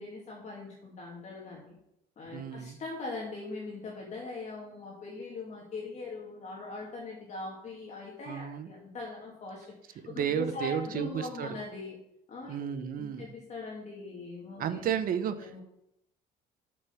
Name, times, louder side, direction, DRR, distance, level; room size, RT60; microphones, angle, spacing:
voice 1, 0.0-1.8 2.2-12.0 12.3-14.9 15.4-15.6, left 3 dB, 45° left, -3 dB, 2.3 m, -41 dB
voice 2, 2.3-2.8 8.2-8.7 10.0-11.6 12.5-13.3 14.6-15.5, right 8 dB, 55° right, 10 dB, 0.9 m, -32 dB
6.3 x 6.0 x 7.0 m, 0.80 s
cardioid pair, 110°, 17 cm